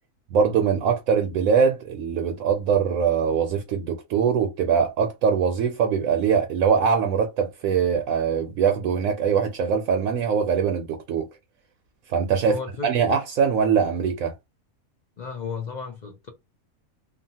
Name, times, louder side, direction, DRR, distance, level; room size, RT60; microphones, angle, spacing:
voice 1, 0.3-11.3 12.1-14.3, right 6 dB, 80° right, 1.0 m, -22 dB
voice 2, 12.4-12.9 15.2-16.3, left 5 dB, 55° left, 0.5 m, -34 dB
2.8 x 2.4 x 2.7 m
omnidirectional pair, 1.5 m